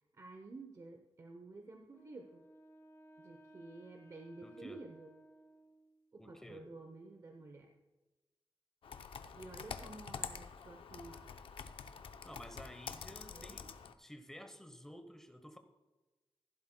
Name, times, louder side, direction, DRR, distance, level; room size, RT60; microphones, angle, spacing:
voice 1, 0.1-2.5 3.2-5.1 6.1-7.7 9.3-11.3 13.3-13.6, right 3 dB, 40° right, 4 dB, 0.7 m, -52 dB
Wind instrument woodwind instrument, 1.9-6.1, right 1 dB, 35° left, 1.5 m, -60 dB
voice 2, 4.4-4.8 6.2-6.7 12.2-13.7 14.0-15.6, equal, 5° left, 7 dB, 0.9 m, -52 dB
Computer keyboard, 8.8-13.9, left 6 dB, 85° left, 0.6 m, -47 dB
15.5 x 11.0 x 2.2 m, 1.1 s
wide cardioid pair, 145°, 9 cm